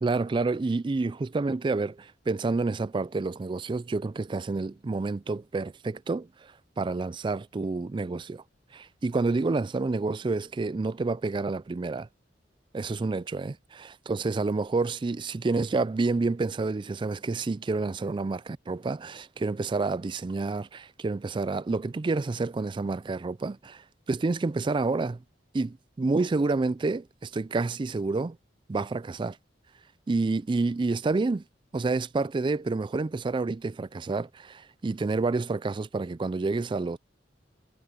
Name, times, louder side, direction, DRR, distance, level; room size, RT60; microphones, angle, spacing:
voice 1, 0.0-8.4 8.7-12.1 12.7-25.2 25.5-28.4 28.7-29.4 30.1-31.4 31.7-37.0, right 3 dB, 25° right, 0.3 m, -29 dB
head